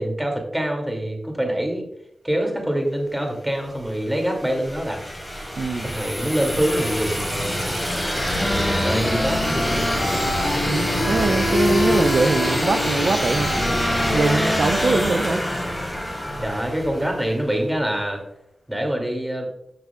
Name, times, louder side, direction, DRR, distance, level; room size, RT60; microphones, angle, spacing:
voice 1, 0.0-1.8 2.2-5.0 5.8-7.7 8.5-10.4 16.4-18.2 18.7-19.5, right 1 dB, 10° right, 2 dB, 2.4 m, -25 dB
sound 1, 3.7-17.5, equal, 5° left, 3.4 m, -25 dB
voice 2, 5.6-5.9 10.7-13.5 14.1-15.4, right 3 dB, 65° right, 8 dB, 0.4 m, -22 dB
Wind instrument woodwind instrument, 7.8-16.1, left 2 dB, 70° left, 2.0 m, -27 dB
12.5 x 6.1 x 2.3 m, 0.76 s
cardioid pair, 50°, 0 cm